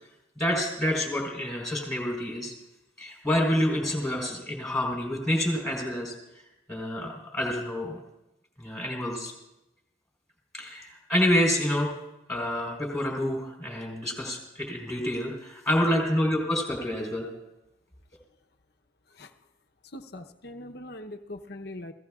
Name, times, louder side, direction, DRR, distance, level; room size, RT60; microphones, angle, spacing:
voice 1, 0.4-2.5 3.0-6.1 6.7-8.0 8.6-9.3 10.5-11.9 12.3-17.3, equal, 5° left, -2 dB, 3.9 m, -28 dB
voice 2, 19.9-21.9, left 1 dB, 55° left, 5 dB, 0.9 m, -41 dB
29.5 x 17.0 x 2.5 m, 0.96 s
head